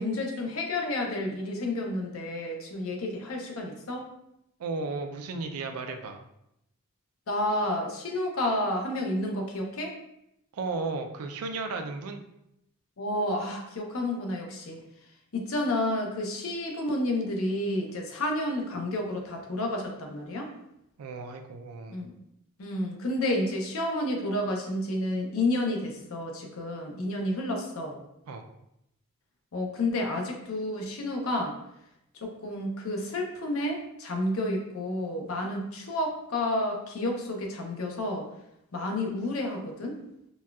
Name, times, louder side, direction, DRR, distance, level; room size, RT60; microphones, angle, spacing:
voice 1, 0.0-4.1 7.3-10.0 13.0-14.8 15.3-20.5 21.9-22.1 22.6-28.0 29.5-31.6 32.2-38.3 38.7-40.0, left 1 dB, 70° left, 2 dB, 0.6 m, -30 dB
voice 2, 4.6-6.2 10.5-12.2 21.0-22.0 28.3-28.4, right 3 dB, 85° right, 5 dB, 0.4 m, -34 dB
4.0 x 2.2 x 2.3 m, 0.82 s
head